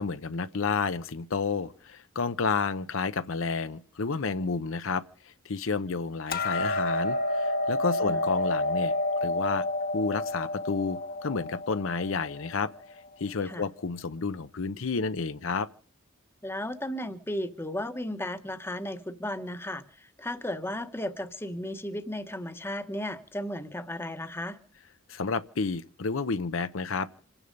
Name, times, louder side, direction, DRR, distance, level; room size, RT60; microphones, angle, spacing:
voice 1, 0.0-8.9 9.2-9.6 9.9-12.7 13.2-15.7 25.1-27.1, left 4 dB, 70° left, 0.7 m, -30 dB
Hammer, 6.3-12.5, left 1 dB, 45° left, 1.2 m, -29 dB
voice 2, 16.4-24.6, left 1 dB, 10° left, 1.0 m, -35 dB
26.5 x 9.9 x 5.2 m
head